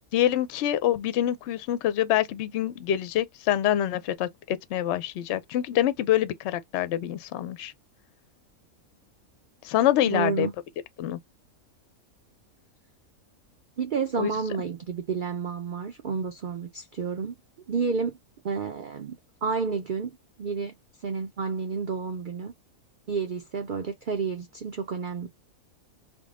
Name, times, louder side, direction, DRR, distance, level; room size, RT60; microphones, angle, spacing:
voice 1, 0.1-7.7 9.6-10.5 11.0-11.2 14.2-14.3, left 12 dB, 65° left, 0.7 m, -26 dB
voice 2, 10.1-10.5 13.8-17.4 17.7-18.2 18.4-20.7 21.0-22.5 23.1-25.3, right 5 dB, 55° right, 0.5 m, -30 dB
3.7 x 2.2 x 3.4 m
omnidirectional pair, 1.5 m